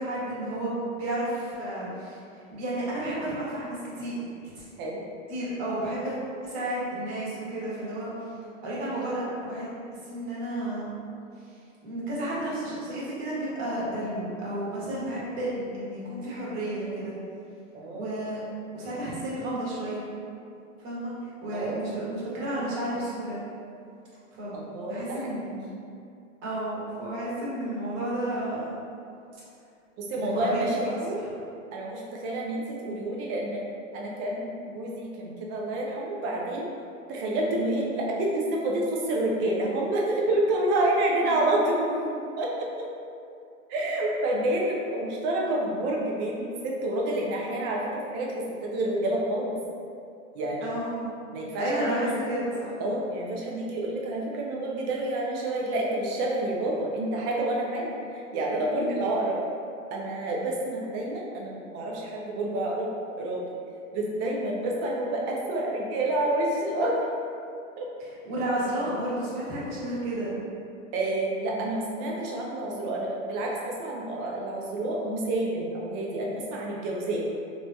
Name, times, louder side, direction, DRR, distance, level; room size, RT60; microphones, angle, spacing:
voice 1, 0.0-2.2 2.5-4.2 4.5-4.6 5.3-6.1 6.4-8.1 8.6-9.7 10.0-10.9 11.8-17.1 17.9-18.4 18.7-20.1 20.8-21.1 21.4-23.4 24.4-24.6 24.8-25.6 26.4-28.7 30.2-30.9 31.2-31.3 41.2-41.4 50.6-51.1 51.5-52.7 58.7-59.0 68.2-70.4 71.3-71.5, right 1 dB, 50° right, -7 dB, 1.2 m, -32 dB
voice 2, 17.7-18.1 21.5-21.8 24.5-25.4 30.1-31.2 31.7-33.6 33.9-36.7 37.1-41.9 42.4-42.7 43.7-49.6 50.3-50.7 51.3-52.2 52.8-59.4 59.9-62.9 63.2-63.5 63.9-67.0 67.8-67.9 70.9-77.2, right 1 dB, 30° right, -2 dB, 0.4 m, -28 dB
2.9 x 2.7 x 2.2 m, 2.5 s
hypercardioid pair, 115°, 40 cm